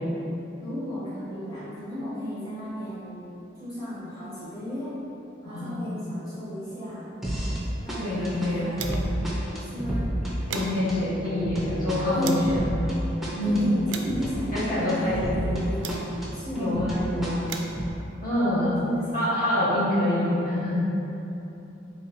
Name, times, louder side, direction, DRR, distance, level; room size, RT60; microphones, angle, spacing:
voice 1, 0.6-5.0 5.4-7.1 7.8-9.2 9.7-10.1 12.1-12.6 13.4-16.9 18.8-19.3, equal, 20° left, -12 dB, 1.3 m, -34 dB
voice 2, 5.4-6.0 8.0-8.8 10.5-12.8 13.3-13.6 14.5-15.5 16.5-17.5 18.2-18.8 19.1-20.9, left 1 dB, 50° left, -12 dB, 1.5 m, -26 dB
sound 1, 7.2-7.6 7.9-15.6 15.9-17.9, right 1 dB, ahead, 0.5 m, -31 dB
sound 2, 7.5-9.3 9.6-9.7 10.1-12.6 13.2-16.4 17.1-19.3, right 6 dB, 80° right, 0.3 m, -42 dB
4.0 x 2.8 x 2.9 m, 2.9 s
head